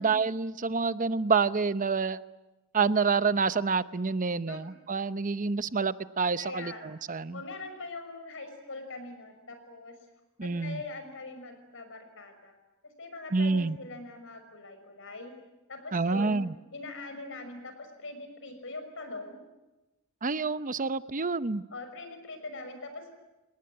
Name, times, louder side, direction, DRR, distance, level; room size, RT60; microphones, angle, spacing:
voice 1, 0.0-2.2 2.7-7.4 10.4-10.8 13.3-13.8 15.9-16.5 20.2-21.6, right 4 dB, 40° right, 14 dB, 0.8 m, -28 dB
voice 2, 6.4-6.9 7.3-10.0 10.4-12.5 12.8-15.3 15.7-19.4 21.7-23.1, left 2 dB, 65° left, 7 dB, 6.1 m, -42 dB
29.0 x 19.0 x 9.6 m, 1.1 s
head